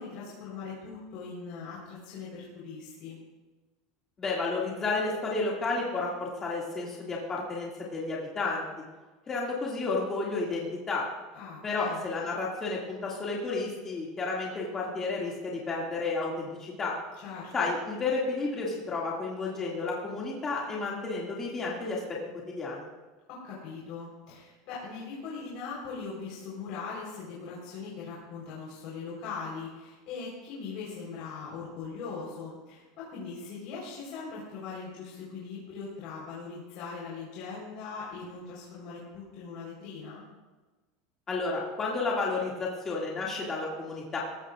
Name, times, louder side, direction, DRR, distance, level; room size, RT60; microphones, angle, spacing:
voice 1, 0.0-3.2 11.3-12.0 17.2-17.5 23.3-40.2, left 5 dB, 45° left, -6 dB, 4.0 m, -40 dB
voice 2, 4.2-8.6 9.3-11.0 11.6-17.0 17.5-22.2 22.5-22.9 41.3-44.2, left 3 dB, 15° left, -4 dB, 2.2 m, -31 dB
19.0 x 16.0 x 2.5 m, 1.2 s
supercardioid pair, 175°, 2 cm